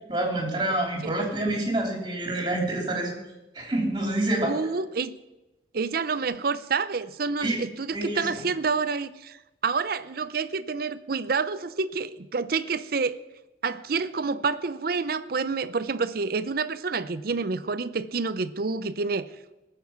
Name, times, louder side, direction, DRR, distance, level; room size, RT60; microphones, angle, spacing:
voice 1, 0.1-3.1 3.5-4.6 7.4-7.6 7.9-8.3, right 1 dB, 25° right, 1 dB, 3.4 m, -27 dB
voice 2, 4.4-5.2 5.7-9.4 9.6-13.2 13.6-19.3, right 4 dB, 55° right, 14 dB, 0.6 m, -28 dB
19.5 x 7.7 x 5.9 m, 1.0 s
head